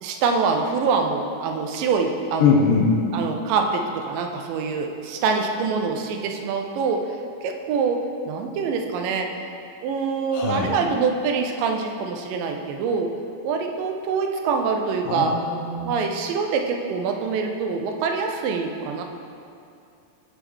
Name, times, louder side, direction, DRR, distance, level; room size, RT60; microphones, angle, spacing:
voice 1, 0.0-2.6 3.1-7.0 7.4-9.3 9.8-13.1 13.4-15.3 15.9-19.0, right 5 dB, 80° right, 3 dB, 2.1 m, -25 dB
voice 2, 2.4-3.0 10.3-10.8 15.1-16.0, left 5 dB, 80° left, -1 dB, 1.9 m, -21 dB
6.7 x 3.7 x 6.1 m, 2.6 s
omnidirectional pair, 4.2 m